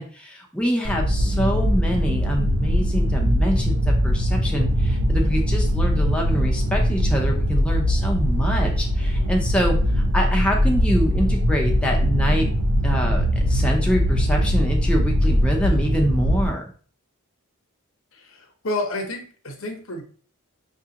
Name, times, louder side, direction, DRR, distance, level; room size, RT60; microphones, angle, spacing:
voice 1, 0.0-12.5 12.8-16.7, equal, 5° left, 0 dB, 0.6 m, -25 dB
sound 1, 0.8-16.5, equal, 85° right, 0.8 m, -21 dB
voice 2, 18.1-20.0, left 2 dB, 65° left, 3 dB, 0.9 m, -30 dB
6.0 x 2.4 x 2.8 m, 0.43 s
head